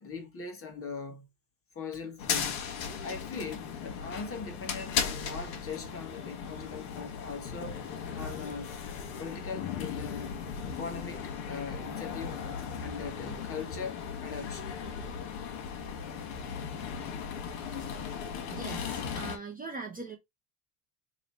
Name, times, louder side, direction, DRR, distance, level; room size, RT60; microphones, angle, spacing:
voice 1, 0.0-1.2 1.7-2.6 3.0-7.8 8.1-8.7 9.2-10.4 10.6-12.4 12.8-14.7, left 4 dB, 30° left, 1.3 m, -40 dB
sound 1, 2.2-19.4, left 7 dB, 80° left, 1.3 m, -37 dB
voice 2, 18.5-20.2, right 3 dB, 20° right, 0.6 m, -40 dB
3.1 x 2.7 x 4.0 m
cardioid pair, 125°, 46 cm